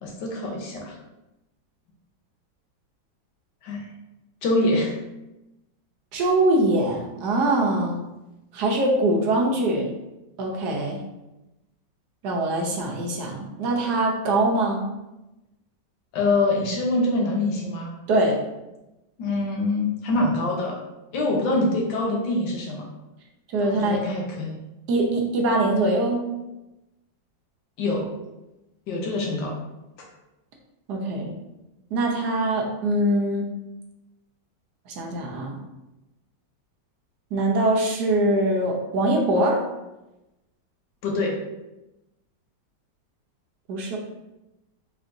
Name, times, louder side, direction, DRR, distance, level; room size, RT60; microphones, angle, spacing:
voice 1, 0.0-0.9 3.6-3.8 4.4-4.9 16.1-17.9 19.2-20.8 21.1-22.9 23.6-24.5 27.8-28.1 28.9-29.5 41.0-41.3, left 2 dB, 80° left, -1 dB, 1.6 m, -24 dB
voice 2, 6.1-8.0 8.5-9.9 10.4-11.0 12.2-14.9 18.1-18.4 23.5-24.0 24.9-26.2 30.9-31.3 31.9-33.5 34.9-35.6 37.3-39.6 43.7-44.0, right 1 dB, 70° right, 0 dB, 1.3 m, -23 dB
4.1 x 4.1 x 2.6 m, 0.97 s
omnidirectional pair, 2.0 m